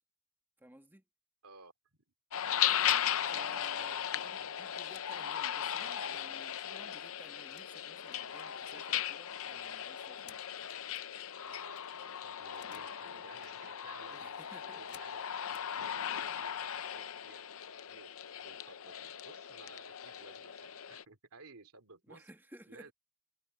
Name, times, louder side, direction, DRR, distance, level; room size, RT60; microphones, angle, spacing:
voice 1, 0.6-1.0 3.3-10.4 14.1-14.8 16.2-16.4 22.1-22.9, right 1 dB, 10° right, 2.1 m, -57 dB
sound 1, 2.3-21.0, left 10 dB, 65° left, 0.7 m, -37 dB
sound 2, 2.8-3.8 4.2-6.5 6.8-7.7 8.1-11.1 11.5-11.6 11.8-13.0 13.2-13.6 14.1-15.7 16.5-16.7 17.1-17.4 17.7-18.2, left 9 dB, 50° left, 1.8 m, -60 dB
voice 2, 3.2-4.8 11.4-15.2 15.7-18.1 18.4-22.3 22.7-22.9, right 3 dB, 75° right, 2.9 m, -57 dB
head